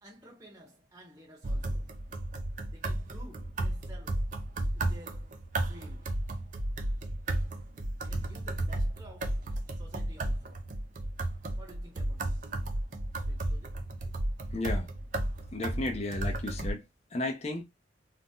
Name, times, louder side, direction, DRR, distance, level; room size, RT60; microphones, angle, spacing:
voice 1, 0.0-1.9 2.7-4.3 4.7-5.3 5.6-6.2 8.0-10.7 11.6-12.5 13.2-13.9, equal, 20° right, 0.7 m, -53 dB
sound 1, 1.4-16.7, right 1 dB, 40° right, 0.4 m, -33 dB
voice 2, 14.5-14.9 15.5-16.9 17.1-17.6, left 2 dB, 35° left, 0.5 m, -33 dB
2.6 x 2.0 x 3.6 m
head